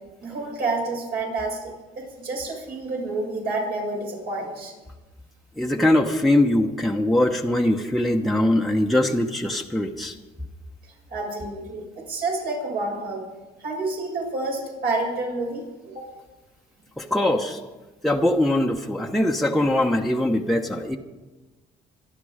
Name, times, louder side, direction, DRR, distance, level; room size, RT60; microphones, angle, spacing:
voice 1, 0.2-4.7 11.1-13.2 13.6-16.1, right 2 dB, 65° right, -1 dB, 6.9 m, -29 dB
voice 2, 5.6-10.1 17.0-17.6 18.0-21.0, left 1 dB, ahead, 0 dB, 1.1 m, -22 dB
26.5 x 10.5 x 5.0 m, 1.2 s
cardioid pair, 110°, 17 cm